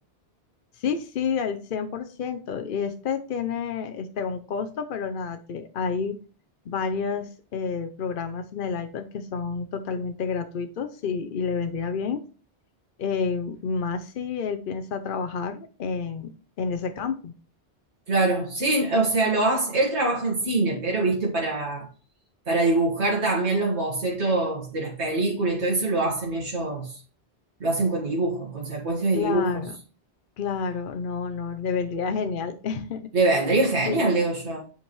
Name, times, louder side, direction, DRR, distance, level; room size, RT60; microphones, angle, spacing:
voice 1, 0.7-6.2 6.7-12.2 13.0-17.3 29.1-29.8 30.4-33.1 33.9-34.2, left 5 dB, 60° left, 0.7 m, -29 dB
voice 2, 18.1-21.9 22.5-27.0 27.6-29.6 33.1-34.6, right 2 dB, 85° right, 2.2 m, -24 dB
7.9 x 5.2 x 3.1 m
omnidirectional pair, 1.1 m